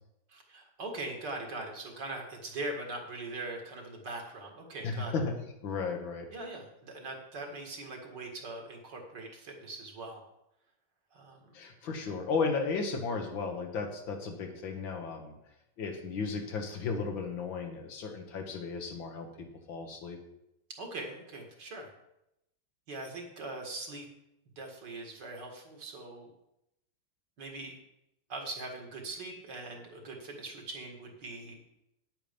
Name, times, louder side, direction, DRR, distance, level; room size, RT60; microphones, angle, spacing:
voice 1, 0.3-5.1 6.3-10.2 11.1-11.4 20.8-21.9 22.9-24.1 24.6-26.3 27.4-27.8 28.3-31.6, right 2 dB, 65° right, 1 dB, 2.5 m, -41 dB
voice 2, 4.8-5.3 5.6-6.3 11.5-15.4 15.8-19.3 19.7-20.2, left 4 dB, 80° left, 3 dB, 2.2 m, -34 dB
9.4 x 8.8 x 5.2 m, 0.84 s
omnidirectional pair, 2.1 m